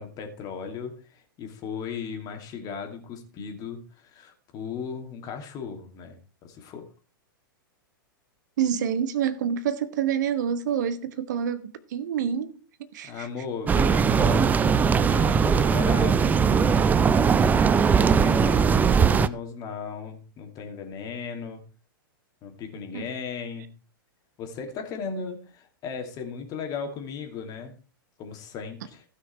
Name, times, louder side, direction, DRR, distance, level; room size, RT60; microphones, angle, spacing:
voice 1, 0.0-6.9 13.0-16.8 18.1-21.6 22.4-23.7 24.4-27.8 28.2-29.0, left 6 dB, 30° left, 2.6 m, -36 dB
voice 2, 8.6-13.3 18.4-18.5 22.9-23.1, right 8 dB, 55° right, 1.0 m, -28 dB
sound 1, 13.7-19.3, right 6 dB, 15° right, 0.5 m, -20 dB
15.5 x 6.3 x 4.5 m
figure-of-eight pair, 100°, 12 cm